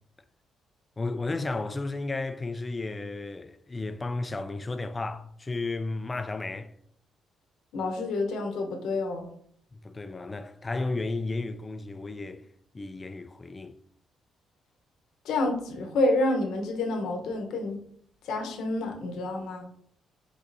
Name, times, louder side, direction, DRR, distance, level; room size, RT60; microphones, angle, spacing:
voice 1, 1.0-6.7 9.7-12.5 12.7-13.8, left 3 dB, 25° left, 0.4 m, -33 dB
voice 2, 7.7-9.3 15.2-17.8 18.2-19.6, left 2 dB, 80° left, 0.9 m, -28 dB
5.2 x 3.7 x 2.6 m
cardioid pair, 90°, 0 cm